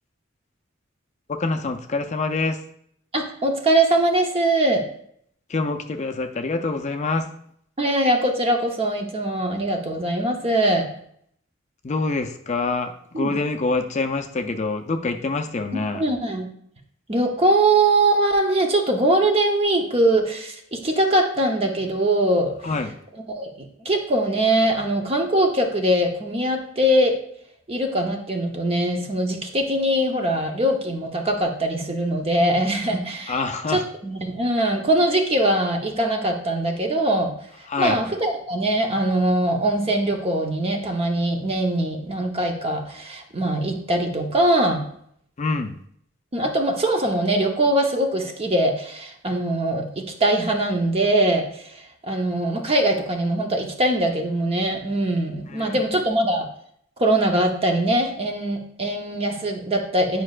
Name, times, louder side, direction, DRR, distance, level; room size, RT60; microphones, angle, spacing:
voice 1, 1.4-2.6 5.5-7.2 11.8-16.0 22.6-22.9 33.3-33.8 37.7-38.0 45.4-45.7 55.5-55.8, left 3 dB, 35° left, 6 dB, 0.5 m, -25 dB
voice 2, 3.1-4.8 7.8-10.9 13.1-13.4 15.9-16.5 17.1-22.5 23.4-27.2 27.7-33.4 33.7-37.3 37.8-44.8 46.3-56.5 57.0-60.2, right 1 dB, 30° right, 3 dB, 0.9 m, -22 dB
9.7 x 5.3 x 2.4 m, 0.68 s
head